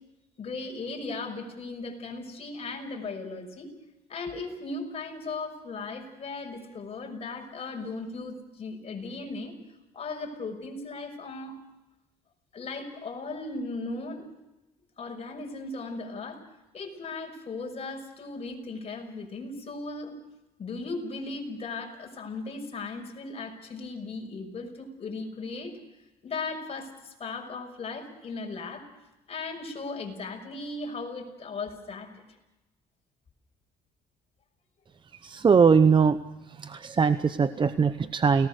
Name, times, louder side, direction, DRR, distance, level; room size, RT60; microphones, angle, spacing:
voice 1, 0.4-3.7 4.1-9.5 9.9-11.6 12.5-14.3 15.0-16.4 16.7-20.1 20.6-25.8 26.2-28.8 29.3-32.2, left 3 dB, 35° left, 3 dB, 6.2 m, -37 dB
voice 2, 35.2-36.2 36.6-38.5, right 5 dB, 30° right, 12 dB, 0.8 m, -21 dB
29.5 x 19.0 x 6.5 m, 1.0 s
cardioid pair, 110°, 17 cm